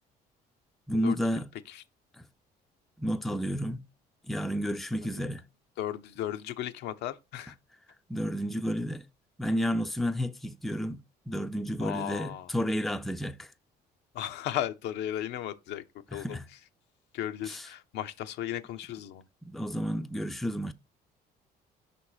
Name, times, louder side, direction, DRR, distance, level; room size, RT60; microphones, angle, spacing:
voice 1, 0.9-1.5 2.2-2.3 3.0-3.9 4.3-5.4 8.1-9.0 9.4-11.0 11.3-13.5 16.1-16.5 17.5-17.7 19.4-20.7, equal, ahead, 0.4 m, -31 dB
voice 2, 5.8-7.5 11.8-12.5 14.1-15.8 16.1-16.4 17.1-19.2, left 12 dB, 85° left, 0.7 m, -35 dB
5.3 x 4.3 x 4.9 m
cardioid pair, 110°, 17 cm